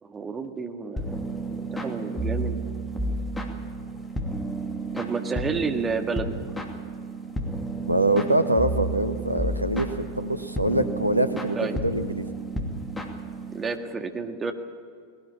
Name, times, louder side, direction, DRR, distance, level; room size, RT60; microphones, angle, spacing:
voice 1, 0.0-2.6 4.9-6.4 11.6-11.8 13.5-14.5, right 4 dB, 15° right, 5 dB, 1.8 m, -31 dB
sound 1, 1.0-13.8, right 2 dB, 10° left, 2.6 m, -32 dB
voice 2, 7.8-12.3, right 1 dB, 85° right, 10 dB, 1.1 m, -24 dB
19.5 x 17.5 x 8.4 m, 2.1 s
figure-of-eight pair, 90°, 0 cm